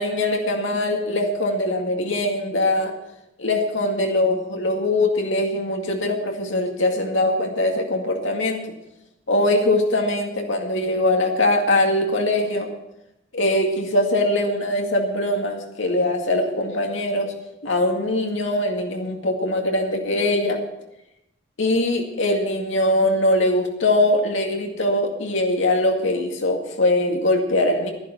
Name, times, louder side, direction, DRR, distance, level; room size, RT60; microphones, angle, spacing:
voice 1, 0.0-2.9 3.4-8.6 9.3-12.7 13.3-17.3 17.6-20.6 21.6-27.9, left 1 dB, 85° left, 2 dB, 2.1 m, -22 dB
11.5 x 11.0 x 5.7 m, 0.86 s
head